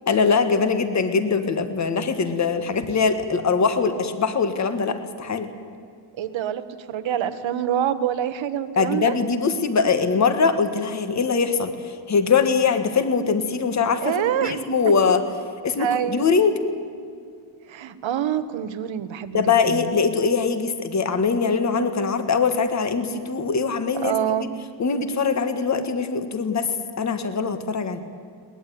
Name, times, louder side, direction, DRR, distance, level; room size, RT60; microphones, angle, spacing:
voice 1, 0.1-5.5 8.8-11.7 12.1-15.2 15.6-16.5 19.3-24.5 24.8-26.7 27.0-28.0, left 5 dB, 40° left, 9 dB, 1.7 m, -22 dB
voice 2, 6.2-9.2 14.0-14.6 15.8-16.3 17.7-19.4 19.7-19.8 24.0-24.5, right 10 dB, 90° right, 11 dB, 1.5 m, -26 dB
22.0 x 20.0 x 9.5 m, 2.3 s
wide cardioid pair, 175°, 44 cm